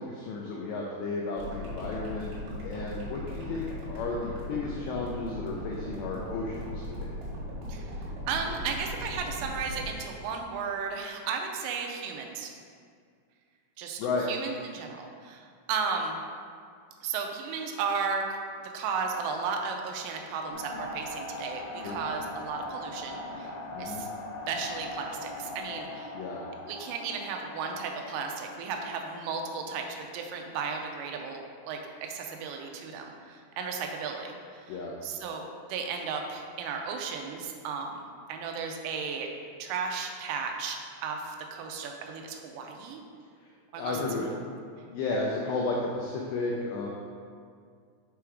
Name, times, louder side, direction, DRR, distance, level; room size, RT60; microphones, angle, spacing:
voice 1, 0.0-2.3 2.6-7.1 14.0-14.3 21.8-22.0 23.7-24.0 26.1-26.4 34.7-34.9 43.8-44.3 44.9-46.9, left 3 dB, 90° left, -2 dB, 2.4 m, -33 dB
sound 1, 1.4-9.9, left 1 dB, 65° right, 3.6 m, -39 dB
voice 2, 8.3-12.5 13.8-14.0 14.3-16.2 17.0-18.2 18.7-24.1 24.5-26.2 26.7-38.0 38.3-39.3 39.6-40.8 41.0-43.0 43.7-44.5, right 5 dB, 85° right, 3 dB, 3.1 m, -34 dB
sound 2, 20.5-29.6, left 1 dB, 75° left, 2.4 m, -41 dB
7.5 x 3.5 x 4.6 m, 2.2 s
omnidirectional pair, 5.7 m